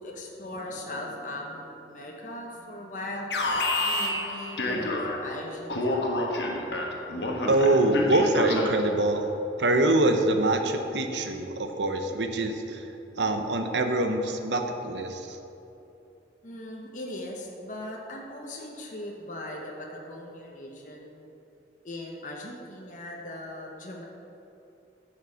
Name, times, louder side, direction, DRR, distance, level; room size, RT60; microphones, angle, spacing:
voice 1, 0.0-3.5 3.8-6.2 16.4-21.2 21.8-24.0, left 1 dB, 45° left, -1 dB, 1.1 m, -39 dB
Alarm, 3.3-5.3 5.7-9.0, left 2 dB, 75° left, 1.3 m, -29 dB
voice 2, 7.5-9.3 9.6-12.9 13.2-15.4, right 2 dB, 85° right, 6 dB, 0.9 m, -24 dB
9.2 x 6.5 x 6.3 m, 2.9 s
head